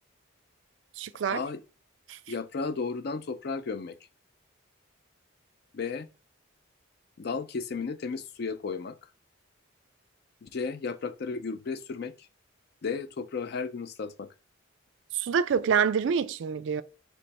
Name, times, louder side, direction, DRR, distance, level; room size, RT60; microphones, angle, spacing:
voice 1, 1.0-1.4 2.1-2.2 15.1-16.8, right 6 dB, 65° right, 0.3 m, -26 dB
voice 2, 2.3-4.0 5.7-6.1 7.2-9.0 10.4-12.3 12.8-14.3, left 4 dB, 50° left, 0.4 m, -34 dB
3.3 x 3.1 x 4.1 m
head